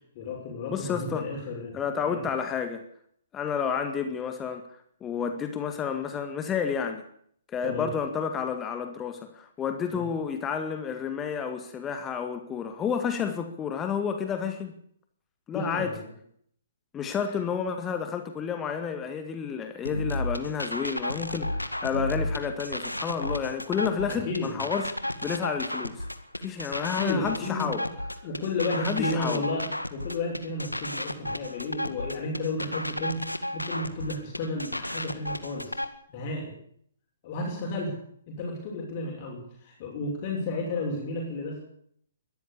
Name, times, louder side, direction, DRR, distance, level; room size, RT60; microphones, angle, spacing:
voice 1, 0.1-1.7 2.0-2.3 7.6-7.9 9.9-10.1 15.5-16.1 17.2-17.4 24.1-24.6 26.8-27.7 28.2-33.2 33.5-35.8 36.1-36.5 37.2-37.9 38.3-41.6, left 2 dB, 35° left, -1 dB, 6.4 m, -32 dB
voice 2, 0.7-1.3 1.7-2.8 3.3-4.6 5.0-7.0 7.5-14.7 15.5-15.9 16.9-26.1 26.4-27.8 28.7-29.4, left 7 dB, 15° left, 7 dB, 2.0 m, -30 dB
sound 1, 19.9-35.9, left 1 dB, 90° left, 2.0 m, -33 dB
22.0 x 14.0 x 8.5 m, 0.65 s
figure-of-eight pair, 125°, 0 cm